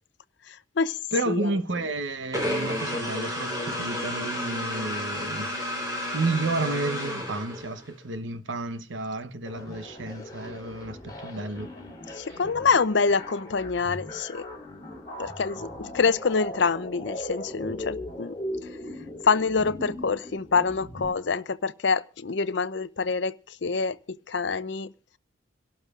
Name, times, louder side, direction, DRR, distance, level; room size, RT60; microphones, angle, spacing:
voice 1, 0.5-0.9 1.3-1.5 12.2-14.5 15.2-18.4 19.2-24.9, left 4 dB, 65° left, 0.6 m, -26 dB
voice 2, 1.1-5.5 5.9-11.7, right 2 dB, 80° right, 1.0 m, -31 dB
sound 1, 2.3-7.9, left 1 dB, 20° right, 4.0 m, -31 dB
sound 2, 9.4-21.1, left 1 dB, 20° left, 4.7 m, -39 dB
27.5 x 12.0 x 2.5 m
head